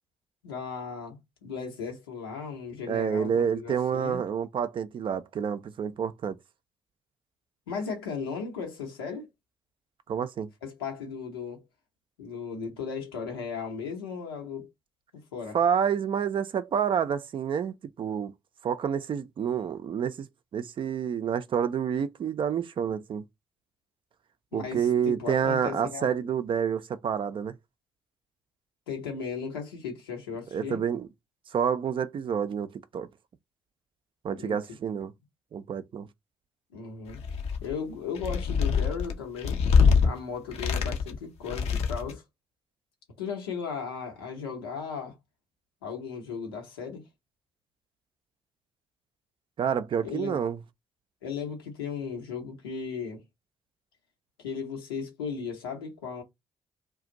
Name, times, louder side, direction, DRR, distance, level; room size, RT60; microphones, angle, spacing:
voice 1, 0.4-4.2 7.7-9.3 10.6-11.6 12.2-14.7 15.3-15.6 24.5-26.1 28.9-30.8 34.3-34.6 36.7-37.2 37.6-39.6 40.0-42.2 43.2-45.1 45.8-47.1 50.0-50.4 51.2-53.2 54.4-56.2, left 6 dB, 85° left, 0.9 m, -36 dB
voice 2, 2.9-6.4 10.1-10.5 15.5-18.3 18.6-20.3 20.5-23.2 24.5-27.6 30.5-31.1 31.5-33.1 34.2-35.1 35.5-36.1 49.6-50.6, right 7 dB, 45° right, 0.5 m, -28 dB
sound 1, 37.1-37.7 38.2-40.1 40.5-41.2 41.5-42.2, left 6 dB, 60° left, 0.6 m, -24 dB
2.4 x 2.2 x 3.8 m
figure-of-eight pair, 45°, 12 cm